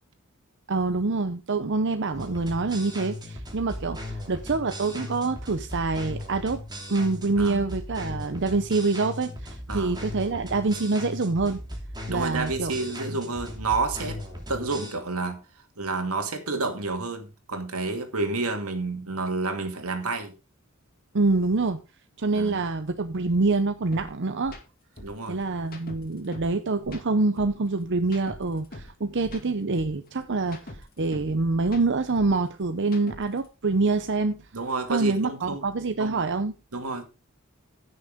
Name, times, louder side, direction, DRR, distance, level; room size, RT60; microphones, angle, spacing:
voice 1, 0.7-6.6 6.9-11.6 12.1-12.7 13.1-13.2 21.1-21.8 22.2-24.6 25.3-34.4 34.9-36.5, right 3 dB, 55° right, 0.8 m, -26 dB
sound 1, 2.1-14.9, left 1 dB, 20° right, 2.9 m, -37 dB
voice 2, 9.7-10.0 12.1-14.2 14.5-15.4 15.8-20.3 22.3-22.6 25.0-25.4 34.5-35.6 36.0-36.2 36.7-37.0, right 3 dB, 85° right, 2.5 m, -30 dB
sound 2, 23.9-24.1 24.4-24.6 25.0-26.5 26.8-28.9 29.2-31.3 31.6-33.5, left 1 dB, 45° left, 2.3 m, -43 dB
15.5 x 6.6 x 3.7 m
head